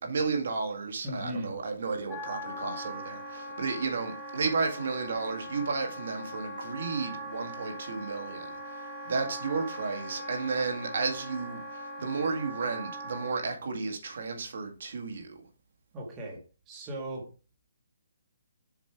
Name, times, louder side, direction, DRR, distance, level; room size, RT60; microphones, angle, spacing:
voice 1, 0.0-15.4, right 4 dB, 55° right, 2.0 m, -33 dB
voice 2, 1.0-1.5 15.9-16.4 16.6-17.2, equal, 15° right, 1.6 m, -37 dB
Wind instrument woodwind instrument, 2.1-13.4, equal, 5° left, 1.7 m, -41 dB
7.1 x 5.3 x 4.6 m
hypercardioid pair, 175°, 0 cm